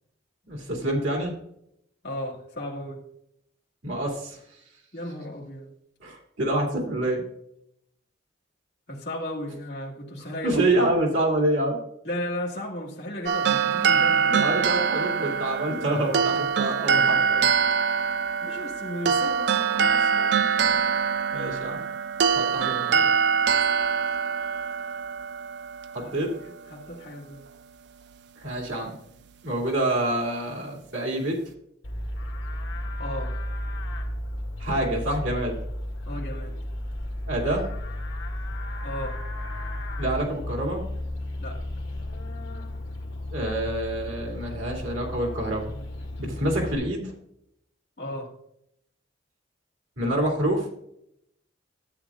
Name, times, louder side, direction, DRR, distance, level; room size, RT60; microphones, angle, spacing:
voice 1, 0.5-1.3 3.8-4.4 6.0-7.2 10.4-11.8 14.3-17.4 21.3-21.8 22.3-23.1 25.9-26.3 28.4-29.0 29.4-31.4 34.6-35.6 37.3-37.7 40.0-40.8 43.3-45.7 46.2-47.1 50.0-50.7, right 1 dB, 85° right, 0 dB, 2.5 m, -27 dB
voice 2, 2.0-3.0 4.9-5.7 8.9-10.9 12.0-14.5 18.4-20.4 26.0-26.1 26.7-27.5 33.0-33.4 36.0-36.5 38.8-39.2 41.4-41.6 48.0-48.3, left 1 dB, 55° left, -5 dB, 1.8 m, -35 dB
sound 1, 13.3-26.5, right 6 dB, 60° right, 0.4 m, -24 dB
Livestock farm animals working animals, 31.8-46.7, left 1 dB, 75° left, 2.0 m, -33 dB
12.5 x 8.7 x 2.4 m, 0.76 s
head